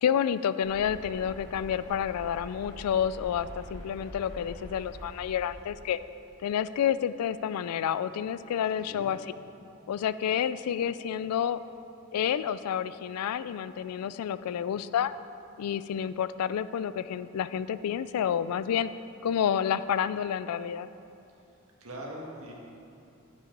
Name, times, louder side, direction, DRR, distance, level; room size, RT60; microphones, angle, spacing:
voice 1, 0.0-6.0 6.4-9.2 9.9-11.6 12.1-15.1 15.6-18.9 19.2-20.9, left 8 dB, 90° left, 16 dB, 0.3 m, -29 dB
sound 1, 0.6-5.7, equal, 70° left, 1.8 m, -45 dB
voice 2, 8.8-9.1 21.8-22.5, right 1 dB, 70° right, -2 dB, 1.6 m, -41 dB
10.0 x 5.6 x 5.2 m, 2.7 s
head